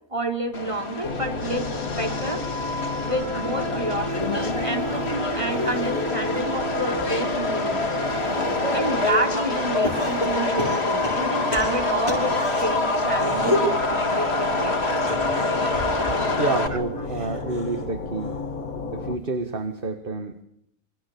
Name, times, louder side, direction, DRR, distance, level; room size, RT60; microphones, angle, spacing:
voice 1, 0.1-2.5 3.0-8.1 8.7-15.2 16.7-16.8, right 1 dB, 20° right, 4 dB, 3.9 m, -29 dB
Subway metro underground, 0.5-16.7, left 2 dB, 45° left, 3.0 m, -26 dB
sound 1, 1.0-19.2, left 4 dB, 80° left, 2.3 m, -34 dB
sound 2, 4.2-6.5 7.0-9.0 9.8-12.6 13.1-13.8 15.0-17.8 18.2-18.6 19.8-19.9, left 1 dB, 20° left, 6.7 m, -32 dB
voice 2, 16.4-18.4 18.9-20.4, right 3 dB, 40° right, 8 dB, 1.9 m, -29 dB
27.0 x 25.0 x 8.6 m, 0.73 s
omnidirectional pair, 1.5 m